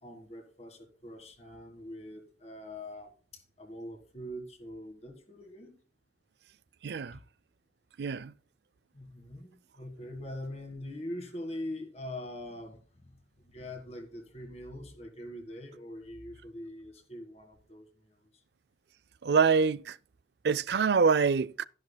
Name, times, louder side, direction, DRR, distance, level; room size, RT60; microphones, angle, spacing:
voice 1, 0.0-5.7 8.9-18.4, left 1 dB, 35° left, 1.6 m, -43 dB
voice 2, 6.8-7.2 8.0-8.3 19.2-20.0 20.4-21.7, right 5 dB, 70° right, 0.4 m, -25 dB
13.0 x 10.5 x 2.2 m
head